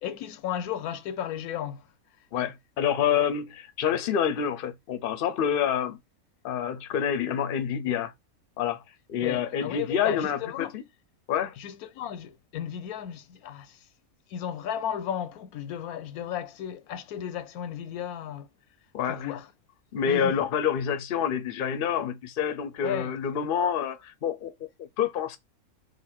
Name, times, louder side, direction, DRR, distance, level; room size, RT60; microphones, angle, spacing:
voice 1, 0.0-1.9 9.2-10.8 11.6-13.9 14.3-18.5 19.0-19.5 20.1-20.3 22.8-23.1, left 9 dB, 90° left, 1.1 m, -34 dB
voice 2, 2.3-6.0 6.4-8.1 8.6-8.8 9.1-10.8 11.3-11.5 18.9-19.3 19.9-24.5 24.8-25.4, left 8 dB, 50° left, 0.7 m, -27 dB
4.0 x 2.6 x 4.3 m
omnidirectional pair, 1.5 m